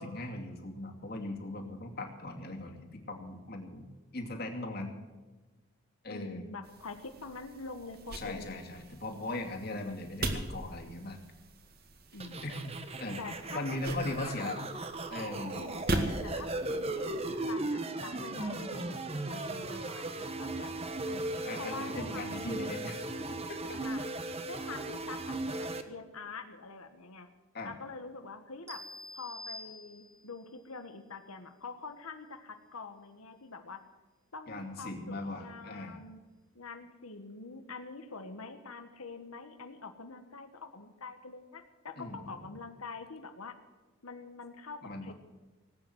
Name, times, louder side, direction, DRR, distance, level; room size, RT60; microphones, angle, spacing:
voice 1, 0.0-4.9 6.0-6.4 8.1-11.2 12.4-13.2 13.5-14.6 15.1-15.6 21.0-23.1 27.5-27.7 34.5-36.0 42.0-42.5 44.8-45.1, left 2 dB, 45° left, 2 dB, 2.5 m, -39 dB
voice 2, 6.1-8.8 12.1-12.5 13.2-14.6 15.5-20.8 21.6-22.4 23.7-24.1 24.5-27.3 27.6-28.8 29.1-33.8 34.3-36.2 36.5-43.6 44.0-45.1, left 4 dB, 90° left, 7 dB, 1.4 m, -45 dB
sound 1, 6.6-17.6, right 2 dB, 45° right, 2.0 m, -40 dB
sound 2, 12.2-25.8, right 2 dB, 30° right, 1.1 m, -37 dB
sound 3, 28.7-30.4, left 1 dB, 15° right, 1.8 m, -46 dB
19.0 x 9.0 x 7.9 m, 1.3 s
head